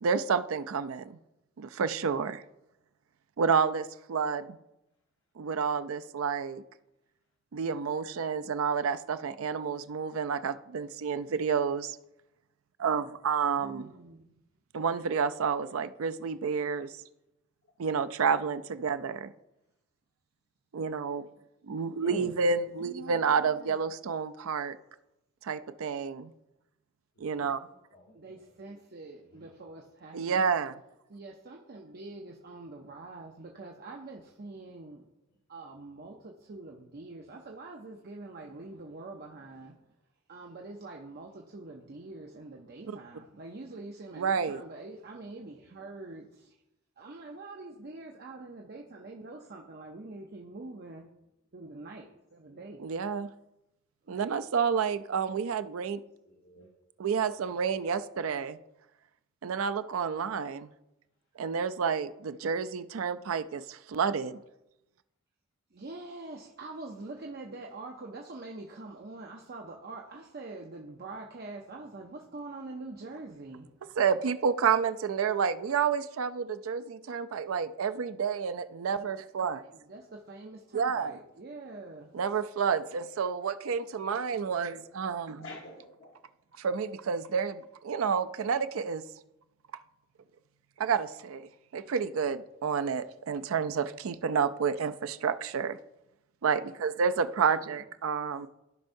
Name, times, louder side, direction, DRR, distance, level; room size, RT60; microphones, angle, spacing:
voice 1, 0.0-1.2 1.6-2.4 3.4-4.6 5.4-6.6 7.5-12.0 12.8-13.9 14.7-16.9 17.8-19.3 20.7-21.3 21.6-24.8 25.4-26.3 27.2-27.6 30.1-30.7 42.9-43.0 44.1-44.6 52.8-53.3 54.1-56.0 57.0-58.6 59.4-60.7 61.4-64.4 74.0-79.6 80.7-81.1 82.1-85.5 86.6-89.0 90.8-95.8 96.4-98.5, right 6 dB, 85° right, 11 dB, 0.4 m, -30 dB
voice 2, 13.6-14.3 22.7-23.8 28.1-30.4 31.1-35.0 35.5-39.8 40.3-46.6 47.0-51.1 51.5-52.8 54.0-54.4 65.7-73.8 79.7-82.2 97.5-97.8, right 2 dB, 50° right, 0 dB, 0.7 m, -45 dB
voice 3, 56.2-56.7 85.4-86.1, left 2 dB, 65° left, -1 dB, 1.2 m, -43 dB
15.0 x 5.4 x 2.6 m, 0.91 s
head